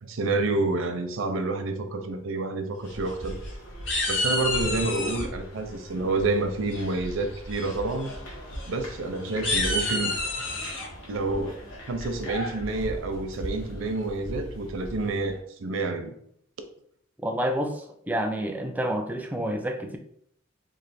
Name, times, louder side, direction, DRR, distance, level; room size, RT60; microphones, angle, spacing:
voice 1, 0.0-3.4 4.1-8.1 8.7-10.2 11.1-11.6 11.9-16.1, right 3 dB, 75° right, 7 dB, 0.5 m, -28 dB
sound 1, 2.8-15.4, equal, 85° left, 1.3 m, -39 dB
sound 2, 2.9-3.5 3.9-5.2 6.7-7.1 7.5-7.7 8.0-8.1 8.5-8.7 9.3-10.9, left 2 dB, 65° left, 1.2 m, -29 dB
voice 2, 17.2-20.0, equal, 10° right, 5 dB, 0.3 m, -29 dB
3.1 x 2.4 x 4.1 m, 0.68 s
head